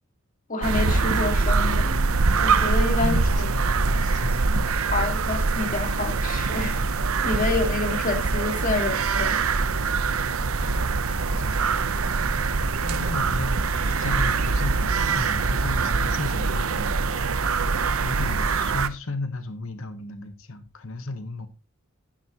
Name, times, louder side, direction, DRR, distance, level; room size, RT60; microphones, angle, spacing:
voice 1, 0.5-3.5 4.9-6.8 7.2-9.4, left 3 dB, 40° left, 2.2 m, -28 dB
sound 1, 0.6-18.9, right 4 dB, 75° right, 0.8 m, -23 dB
voice 2, 3.0-4.6 10.6-11.9 12.8-13.6 13.9-17.3 18.0-21.5, left 2 dB, 70° left, 1.1 m, -34 dB
11.0 x 10.5 x 3.0 m
head